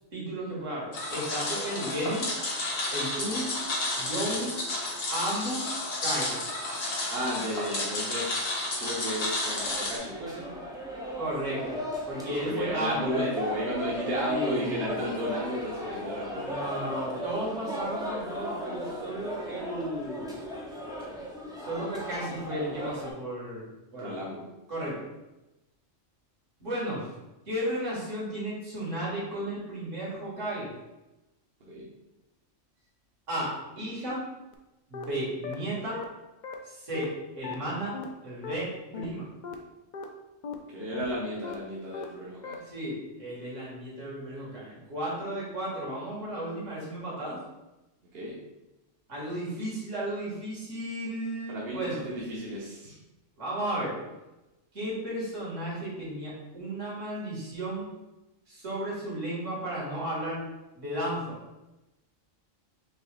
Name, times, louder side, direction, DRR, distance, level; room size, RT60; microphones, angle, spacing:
voice 1, 0.1-2.3 2.9-3.6 4.0-4.6 5.1-5.7 6.0-6.4 11.2-11.8 12.1-13.3 14.3-14.8 16.4-20.4 21.6-23.7 23.9-24.2 24.7-25.0 26.6-27.1 27.5-30.7 33.3-34.2 34.9-36.0 36.6-39.3 42.6-47.4 49.1-52.1 53.4-54.0 54.7-57.9 58.5-60.4 60.8-61.4, right 1 dB, 70° right, -5 dB, 2.0 m, -34 dB
sound 1, 0.9-10.0, left 2 dB, 80° left, 1.4 m, -32 dB
voice 2, 7.1-8.4 8.8-10.5 12.2-16.6 24.0-24.5 31.7-31.9 40.7-42.6 48.1-48.4 51.5-53.0, equal, 55° right, -5 dB, 1.0 m, -34 dB
sound 2, 9.6-23.1, equal, 5° right, 0.3 m, -36 dB
sound 3, 34.5-34.6 34.9-35.0 35.4-35.5 35.9-36.0 36.4-36.5 36.9-37.0 37.4-37.5 37.9-38.0 38.4-38.5 38.9-39.0 39.4-39.5 39.9-40.0 40.4-40.5 40.9-41.0 41.4-41.5 41.9-42.0 42.4-42.5, left 6 dB, 60° left, 0.5 m, -37 dB
4.7 x 3.2 x 3.2 m, 1.0 s
omnidirectional pair, 1.3 m